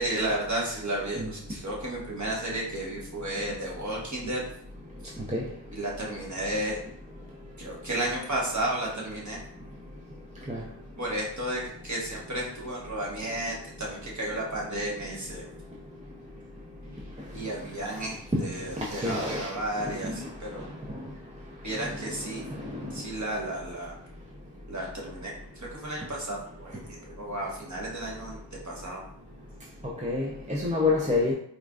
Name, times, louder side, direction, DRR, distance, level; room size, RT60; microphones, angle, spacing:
voice 1, 0.0-4.4 5.0-5.1 5.7-6.8 7.6-9.4 11.0-15.5 17.3-20.6 21.6-22.5 22.9-23.9 24.7-28.4 28.6-29.0, right 1 dB, 35° right, 1.2 m, -33 dB
voice 2, 18.9-19.5 19.9-20.2 22.7-22.8 29.8-31.3, left 3 dB, 15° right, 0.6 m, -27 dB
4.3 x 2.6 x 2.3 m
cardioid pair, 40°, 47 cm